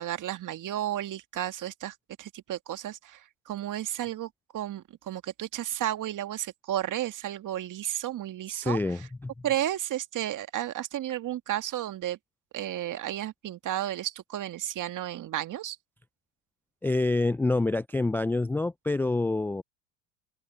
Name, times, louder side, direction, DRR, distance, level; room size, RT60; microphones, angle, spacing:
voice 1, 0.0-9.1 9.4-12.2 12.5-15.8, right 12 dB, 45° right, 2.0 m, -33 dB
voice 2, 8.5-9.3 16.8-19.6, left 2 dB, 5° left, 0.4 m, -27 dB
open air
hypercardioid pair, 70°, 41 cm